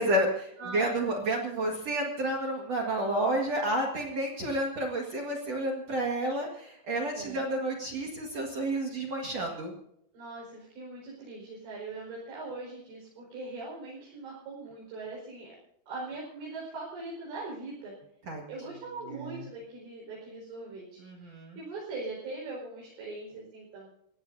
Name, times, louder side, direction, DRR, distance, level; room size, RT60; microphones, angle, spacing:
voice 1, 0.0-9.7 18.3-18.4 19.2-19.4 21.0-21.6, right 1 dB, 50° right, 1 dB, 2.0 m, -30 dB
voice 2, 0.6-1.2 7.1-7.4 10.1-15.5 15.9-17.9 18.5-23.9, right 3 dB, 70° right, -5 dB, 7.2 m, -41 dB
30.0 x 16.5 x 2.7 m, 0.77 s
omnidirectional pair, 5.4 m